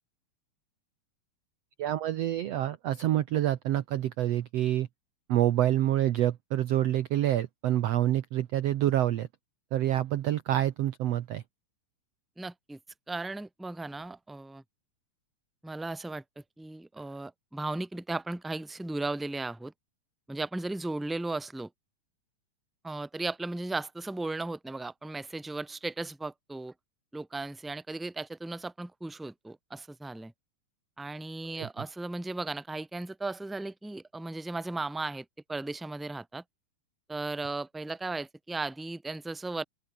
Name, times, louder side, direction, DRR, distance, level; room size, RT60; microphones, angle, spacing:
voice 1, 1.8-4.9 5.3-9.3 9.7-11.4 31.6-31.7, right 13 dB, 75° right, 1.5 m, -27 dB
voice 2, 12.4-12.8 13.1-14.6 15.6-16.2 16.6-19.7 20.3-21.7 22.8-26.7 27.1-30.3 31.0-36.4 37.1-39.6, right 2 dB, ahead, 1.8 m, -36 dB
open air
omnidirectional pair, 4.1 m